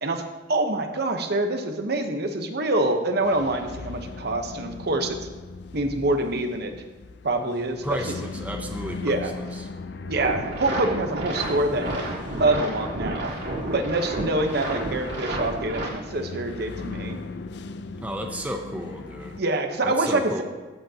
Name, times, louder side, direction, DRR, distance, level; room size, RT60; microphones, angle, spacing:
voice 1, 0.0-5.2 5.7-6.7 7.2-8.0 9.0-9.3 10.1-12.0 12.4-13.3 13.7-17.2 19.4-20.4, right 2 dB, 55° right, 6 dB, 0.9 m, -25 dB
sound 1, 3.2-19.4, left 4 dB, 60° left, 0.5 m, -39 dB
voice 2, 7.8-9.7 18.0-19.4 19.8-20.4, equal, 10° right, 3 dB, 0.6 m, -33 dB
sound 2, 10.1-15.9, right 1 dB, 85° right, 3.5 m, -31 dB
16.0 x 7.9 x 2.8 m, 1.3 s
head